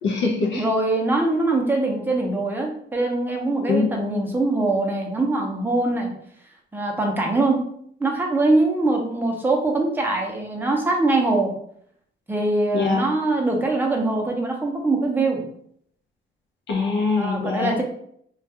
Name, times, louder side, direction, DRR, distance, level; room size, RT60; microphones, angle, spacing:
voice 1, 0.0-0.7 3.7-4.2 12.7-13.0 16.7-17.7, left 4 dB, 70° left, 1 dB, 0.5 m, -23 dB
voice 2, 0.5-6.1 6.7-7.6 8.0-11.5 12.3-15.4 17.1-17.8, right 2 dB, 10° right, 0 dB, 0.6 m, -22 dB
2.3 x 2.3 x 2.7 m, 0.66 s
cardioid pair, 90°, 20 cm